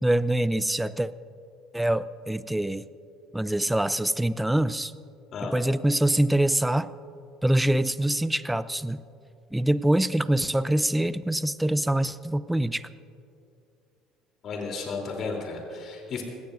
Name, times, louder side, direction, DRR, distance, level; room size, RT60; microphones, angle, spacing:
voice 1, 0.0-1.1 1.7-2.9 3.3-4.9 5.4-6.9 7.4-9.0 9.5-12.9, right 1 dB, 5° right, 16 dB, 0.6 m, -24 dB
voice 2, 14.4-16.2, left 4 dB, 45° left, 1 dB, 3.5 m, -33 dB
29.5 x 17.0 x 2.7 m, 2.6 s
hypercardioid pair, 60°, 0 cm